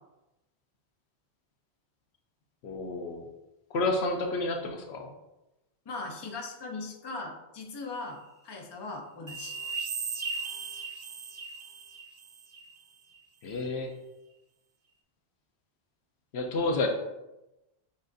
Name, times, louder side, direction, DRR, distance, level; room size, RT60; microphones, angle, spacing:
voice 1, 2.6-3.3 3.7-5.1 13.4-13.9 16.3-16.9, left 2 dB, 75° left, 3 dB, 0.9 m, -30 dB
voice 2, 5.9-8.2 8.4-9.5, left 3 dB, 30° left, 1 dB, 0.5 m, -39 dB
sound 1, 9.3-12.7 13.1-13.2, right 4 dB, 55° right, 0.4 m, -37 dB
7.2 x 2.5 x 2.6 m, 0.97 s
omnidirectional pair, 1.1 m